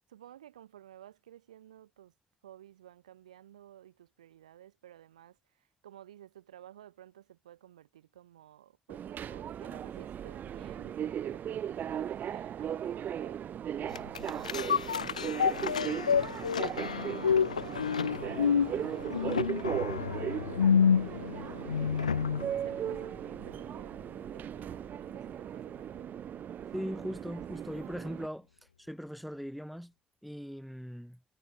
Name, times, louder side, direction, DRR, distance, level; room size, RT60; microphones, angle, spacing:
voice 1, 0.1-2.1 2.4-17.1 17.6-24.0 24.3-26.1, right 11 dB, 80° right, 3.9 m, -54 dB
Subway metro underground, 8.9-28.3, right 9 dB, 55° right, 2.1 m, -37 dB
sound 1, 13.9-22.5 22.9-23.0, left 7 dB, 85° left, 0.6 m, -29 dB
voice 2, 26.7-28.5 28.8-29.9 30.2-31.2, equal, ahead, 5.3 m, -39 dB
figure-of-eight pair, 40°, 4 cm